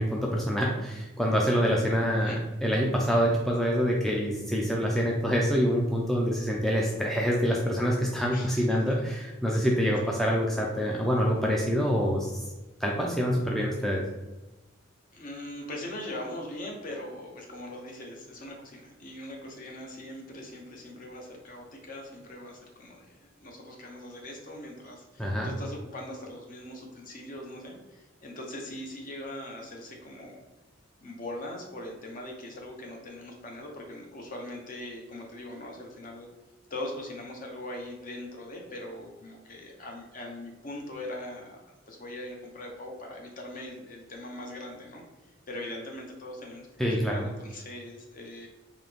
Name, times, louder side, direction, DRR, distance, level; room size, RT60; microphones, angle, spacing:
voice 1, 0.0-12.4 12.8-14.0 25.2-25.5 46.8-47.3, equal, ahead, -2 dB, 0.4 m, -26 dB
voice 2, 8.3-8.7 8.9-9.0 10.0-10.1 15.1-30.5 31.0-36.3 36.7-48.5, left 1 dB, 45° left, 1 dB, 0.7 m, -41 dB
3.8 x 2.8 x 3.4 m, 1.1 s
head